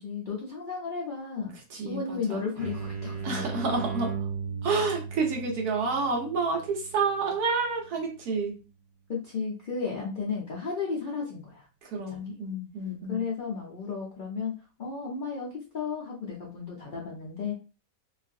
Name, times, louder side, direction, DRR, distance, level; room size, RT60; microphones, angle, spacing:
voice 1, 0.0-1.5 1.8-3.8 9.1-11.7 12.1-12.2 13.1-14.5 14.8-17.6, left 5 dB, 55° left, -4 dB, 0.5 m, -34 dB
voice 2, 1.7-2.5 3.2-4.1 4.6-8.5 11.8-13.2, right 4 dB, 90° right, 0 dB, 1.4 m, -29 dB
sound 1, 2.6-8.1, right 6 dB, 45° right, 0.8 m, -37 dB
3.0 x 2.4 x 2.5 m, 0.33 s
omnidirectional pair, 1.6 m